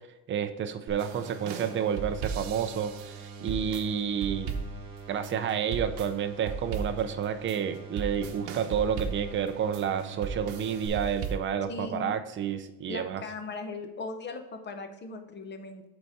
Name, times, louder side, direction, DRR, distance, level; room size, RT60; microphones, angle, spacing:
voice 1, 0.3-4.5 5.1-13.2, right 8 dB, 30° right, 8 dB, 0.5 m, -30 dB
sound 1, 0.9-10.9, right 5 dB, 55° right, 1.9 m, -44 dB
sound 2, 1.0-11.4, right 5 dB, 70° right, 1.0 m, -37 dB
voice 2, 11.7-12.2 12.9-15.8, left 3 dB, 25° left, 7 dB, 0.8 m, -38 dB
7.8 x 4.1 x 4.8 m, 0.99 s
cardioid pair, 150°, 42 cm